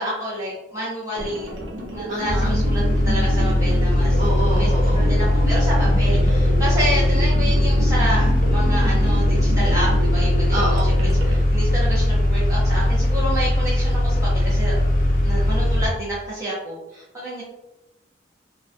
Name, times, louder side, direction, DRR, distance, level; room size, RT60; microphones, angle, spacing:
voice 1, 0.0-1.5 1.9-4.2 4.5-14.8 15.2-17.4, right 1 dB, 15° right, -8 dB, 0.6 m, -29 dB
sound 1, 1.2-11.4, right 1 dB, 85° right, 0.5 m, -30 dB
voice 2, 2.1-2.5 4.2-5.1 10.5-10.8, right 1 dB, 45° right, -5 dB, 1.0 m, -28 dB
sound 2, 2.3-15.9, left 1 dB, 50° left, 0.5 m, -19 dB
2.2 x 2.2 x 2.5 m, 0.94 s
head